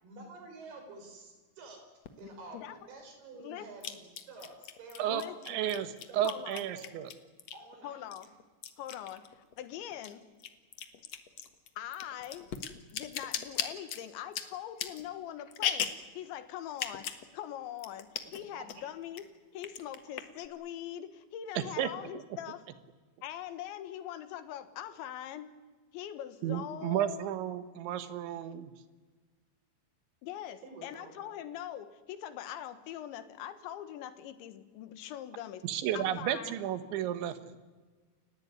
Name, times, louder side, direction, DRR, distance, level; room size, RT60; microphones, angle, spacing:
voice 1, 0.0-1.8 2.2-5.3 5.7-6.3 6.7-6.9 7.5-8.0 18.2-18.8 30.6-31.3, right 3 dB, 60° right, 4 dB, 7.1 m, -49 dB
sound 1, 2.1-2.2 3.8-7.7 8.1-9.7 9.9-16.1 16.7-17.3 17.5-17.6 17.8-18.4 18.7-19.2 19.6-20.5, left 8 dB, 65° left, 1.7 m, -38 dB
voice 2, 2.2-2.8 3.4-3.7 5.1-5.6 6.2-6.6 7.8-8.3 8.8-10.2 11.8-12.5 12.9-17.1 17.3-19.3 19.5-22.6 23.2-25.5 25.9-27.3 30.2-35.7 35.9-36.5, left 11 dB, 90° left, 11 dB, 3.8 m, -42 dB
voice 3, 5.5-5.9 6.1-7.1 21.8-21.9 26.4-28.7 35.6-37.4, right 11 dB, 90° right, 12 dB, 3.8 m, -32 dB
29.5 x 16.0 x 9.7 m, 1.3 s
omnidirectional pair, 5.1 m